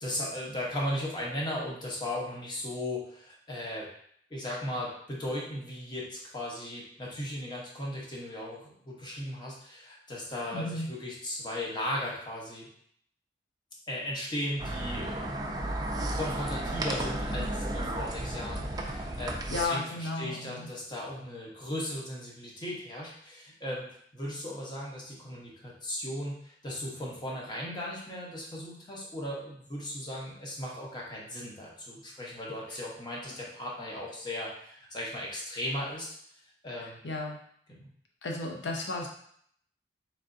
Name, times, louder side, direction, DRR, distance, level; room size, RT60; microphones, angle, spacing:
voice 1, 0.0-3.9 4.3-12.7 13.9-15.4 16.1-23.9 24.1-36.1 36.6-37.0 37.7-37.9, left 1 dB, 25° left, -3 dB, 0.9 m, -37 dB
voice 2, 10.5-10.9 19.5-20.7 32.7-32.8 36.8-37.4 38.2-39.1, left 2 dB, 85° left, 0 dB, 0.6 m, -34 dB
sound 1, 14.6-19.6, right 1 dB, 25° right, 0.4 m, -33 dB
3.8 x 3.4 x 2.6 m, 0.65 s
head